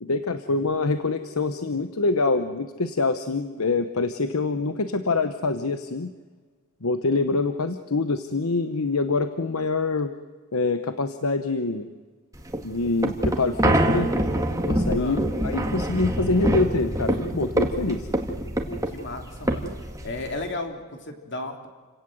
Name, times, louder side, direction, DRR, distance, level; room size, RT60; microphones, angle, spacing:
voice 1, 0.0-6.1 6.8-10.1 10.5-11.9 12.6-14.1 14.6-18.1, left 3 dB, 75° left, 10 dB, 1.0 m, -25 dB
sound 1, 12.4-20.5, right 1 dB, 15° right, 2.0 m, -25 dB
voice 2, 18.6-19.7 20.0-21.7, left 2 dB, 55° left, 4 dB, 3.1 m, -34 dB
29.5 x 17.5 x 7.8 m, 1.5 s
head